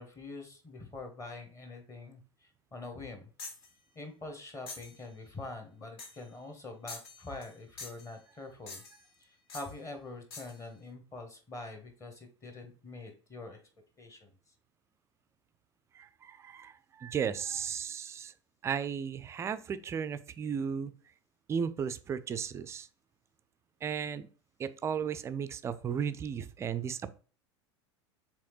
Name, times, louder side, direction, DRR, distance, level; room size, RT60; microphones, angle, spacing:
voice 1, 0.0-3.3 3.9-8.8 9.2-13.6 14.0-14.3, left 2 dB, 20° left, 4 dB, 1.1 m, -45 dB
sound 1, 3.4-3.7 4.7-5.0 6.0-6.3 6.9-7.5 7.8-8.1 8.7-9.1 9.5-9.7 10.3-10.6, left 4 dB, 60° left, 1.0 m, -45 dB
voice 2, 16.0-18.3 18.6-20.9 21.5-22.9 23.8-24.3 24.6-27.1, right 7 dB, 20° right, 14 dB, 0.3 m, -35 dB
4.8 x 3.5 x 3.0 m, 0.39 s
figure-of-eight pair, 80°, 15 cm